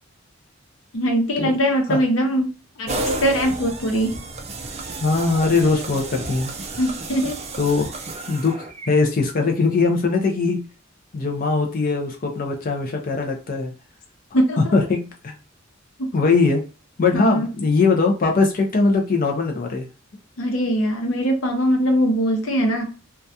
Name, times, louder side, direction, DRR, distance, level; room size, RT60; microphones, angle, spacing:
voice 1, 0.9-2.5 2.8-4.2 6.8-7.4 14.3-14.7 16.0-16.1 17.1-17.5 20.4-22.9, equal, 85° left, 3 dB, 0.7 m, -21 dB
sound 1, 2.9-8.9, right 2 dB, 30° right, 0.4 m, -32 dB
voice 2, 5.0-6.5 7.6-8.0 8.3-8.5 8.9-10.6 11.1-13.7 14.6-15.3 16.1-16.6 17.0-19.9, left 4 dB, 45° left, 2 dB, 0.4 m, -20 dB
2.3 x 2.2 x 2.6 m, 0.34 s
head